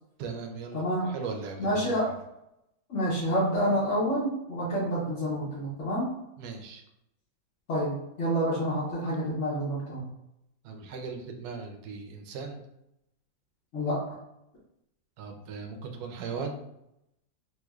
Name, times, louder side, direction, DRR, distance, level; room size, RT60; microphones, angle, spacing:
voice 1, 0.2-2.0 6.4-6.8 10.6-12.6 15.2-16.7, right 5 dB, 70° right, 4 dB, 1.0 m, -38 dB
voice 2, 0.7-1.2 1.6-2.1 2.9-6.1 7.7-10.1 13.7-14.0, equal, 50° left, -9 dB, 1.0 m, -28 dB
3.2 x 3.1 x 2.3 m, 0.82 s
omnidirectional pair, 2.0 m